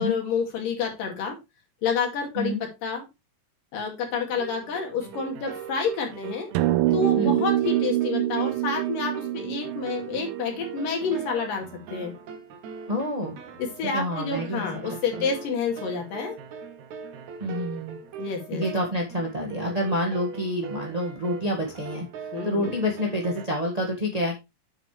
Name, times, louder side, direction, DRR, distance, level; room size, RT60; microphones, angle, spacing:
voice 1, 0.0-1.4 1.8-3.1 3.7-6.5 6.9-12.1 13.6-16.4 18.2-18.7 22.3-22.7, left 5 dB, 75° left, 2 dB, 4.0 m, -29 dB
sound 1, 4.3-23.5, right 7 dB, 65° right, 2.4 m, -41 dB
sound 2, 6.6-11.1, right 15 dB, 90° right, 2.3 m, -25 dB
voice 2, 7.1-7.5 12.9-13.4 13.9-15.2 17.4-18.0 18.5-24.4, equal, 30° right, -1 dB, 0.7 m, -28 dB
9.0 x 7.6 x 3.2 m, 0.23 s
omnidirectional pair, 3.9 m